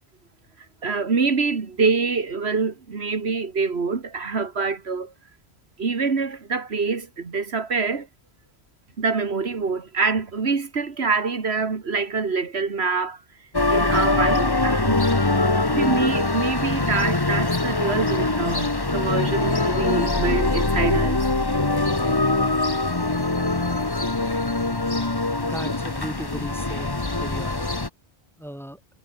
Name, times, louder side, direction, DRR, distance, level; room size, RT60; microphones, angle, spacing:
voice 1, 0.8-5.1 5.8-8.1 9.0-13.2 13.7-15.0 15.7-21.2, right 4 dB, 80° right, 2.1 m, -25 dB
sound 1, 13.5-27.9, left 2 dB, 20° left, 1.4 m, -23 dB
voice 2, 25.4-27.7 28.4-28.8, equal, ahead, 2.8 m, -36 dB
omnidirectional pair, 1.1 m